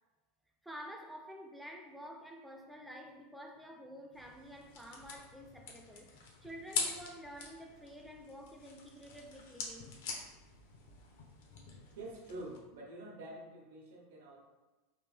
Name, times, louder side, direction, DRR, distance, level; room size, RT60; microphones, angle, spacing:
voice 1, 0.6-9.9, equal, ahead, 0.4 m, -50 dB
sound 1, 4.1-12.6, left 4 dB, 65° left, 0.7 m, -44 dB
voice 2, 11.9-14.4, right 1 dB, 90° right, 1.1 m, -47 dB
3.4 x 2.6 x 3.3 m
supercardioid pair, 170°, 0 cm